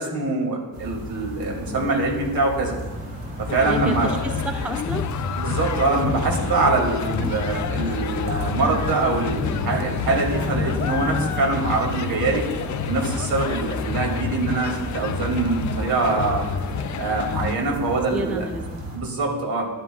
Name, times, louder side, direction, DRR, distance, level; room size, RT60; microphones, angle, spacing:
voice 1, 0.0-2.8 3.4-4.2 5.4-12.4 12.8-16.5 16.9-18.5 18.9-19.7, right 3 dB, 70° right, 0 dB, 2.5 m, -24 dB
sound 1, 0.7-19.0, equal, 45° right, 3.1 m, -34 dB
sound 2, 2.9-11.5, equal, 25° right, 2.7 m, -35 dB
sound 3, 3.5-17.6, left 7 dB, 50° left, 0.5 m, -29 dB
voice 2, 3.7-5.1 7.2-7.4 18.1-18.8, right 1 dB, 5° right, 7 dB, 0.3 m, -31 dB
13.0 x 11.5 x 2.4 m, 1.2 s
wide cardioid pair, 165°, 37 cm